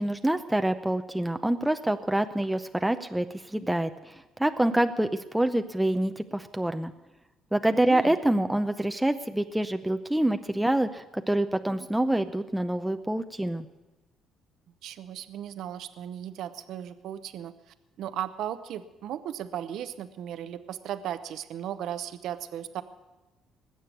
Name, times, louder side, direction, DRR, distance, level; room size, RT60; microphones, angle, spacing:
voice 1, 0.0-6.9 7.5-13.7, right 1 dB, 5° right, 7 dB, 0.6 m, -26 dB
voice 2, 7.8-8.2 14.8-17.5 18.0-22.8, right 10 dB, 70° right, 12 dB, 0.7 m, -36 dB
20.0 x 7.7 x 8.3 m, 1.1 s
cardioid pair, 100°, 0 cm